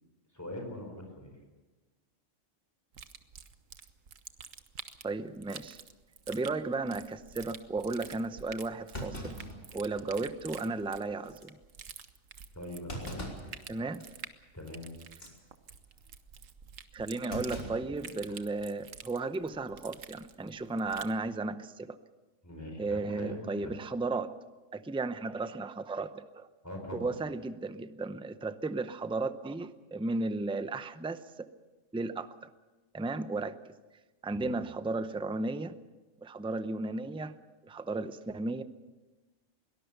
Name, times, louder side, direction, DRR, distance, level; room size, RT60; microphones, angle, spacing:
voice 1, 0.3-1.3 10.0-10.2 12.5-13.3 14.5-14.9 22.4-23.3 23.6-23.7 26.6-27.1 34.3-34.5, left 1 dB, 15° left, 2 dB, 4.4 m, -42 dB
sound 1, 2.9-21.2, right 7 dB, 90° right, 1.5 m, -49 dB
voice 2, 5.0-5.8 6.3-9.3 9.7-11.6 13.7-14.0 16.9-22.0 22.8-24.3 24.7-26.5 26.9-31.5 31.9-32.3 32.9-33.5 34.2-35.7 36.2-37.3 37.7-38.6, right 3 dB, 5° right, 11 dB, 0.5 m, -34 dB
Thump thud, 8.0-8.2 8.9-10.3 10.7-10.8 11.2-11.5 12.9-13.6 14.0-14.3 15.1-15.4 17.3-18.5 18.8-18.9 20.1-20.4, equal, 45° left, 4.1 m, -42 dB
22.5 x 18.5 x 6.8 m, 1.2 s
omnidirectional pair, 1.3 m